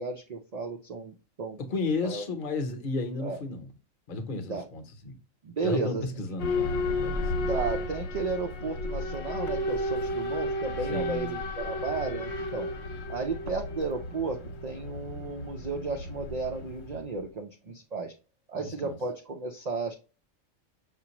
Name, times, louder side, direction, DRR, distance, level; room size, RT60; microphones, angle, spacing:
voice 1, 0.0-1.6 2.0-2.2 3.2-3.4 4.5-4.6 5.4-6.0 7.5-12.7 13.1-18.1 18.5-19.9, right 4 dB, 60° right, 0.4 m, -33 dB
voice 2, 1.7-3.7 4.1-5.2 5.6-7.5 10.9-11.4 18.5-19.0, left 3 dB, 45° left, 0.9 m, -33 dB
Boat Water vehicle / Alarm, 6.4-17.0, left 1 dB, 70° left, 1.1 m, -33 dB
5.8 x 2.5 x 2.8 m
omnidirectional pair, 1.4 m